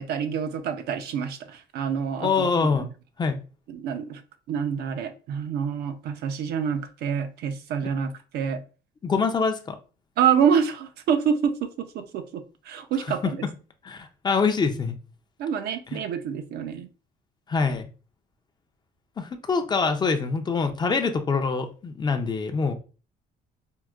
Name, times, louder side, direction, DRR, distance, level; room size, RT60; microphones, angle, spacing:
voice 1, 0.0-2.9 3.7-4.2 4.5-8.6 10.2-13.5 15.4-16.9, right 7 dB, 75° right, 0.5 m, -27 dB
voice 2, 2.2-2.9 3.2-3.4 9.0-9.8 13.8-15.0 15.9-16.0 17.5-17.9 19.2-22.7, left 4 dB, 25° left, 0.4 m, -25 dB
4.6 x 2.1 x 2.3 m
cardioid pair, 110°, 17 cm